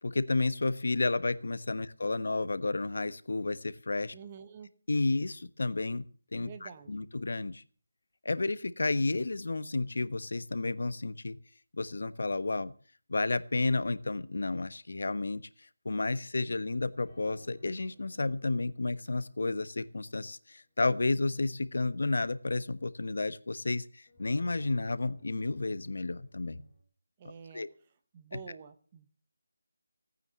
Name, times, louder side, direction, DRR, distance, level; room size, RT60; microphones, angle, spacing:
voice 1, 0.0-4.1 4.9-6.0 6.3-7.6 8.2-11.4 11.7-12.7 13.1-15.4 15.8-26.6 27.5-27.7 28.3-28.4, left 3 dB, 65° left, 14 dB, 1.2 m, -31 dB
voice 2, 4.1-4.7 6.4-7.0 27.2-27.7 28.1-29.1, right 7 dB, 20° right, 10 dB, 1.1 m, -48 dB
sound 1, 17.0-19.7 20.1-20.2 24.1-26.8, right 1 dB, 25° left, 4.3 m, -57 dB
17.5 x 9.3 x 6.9 m, 0.42 s
figure-of-eight pair, 170°, 0 cm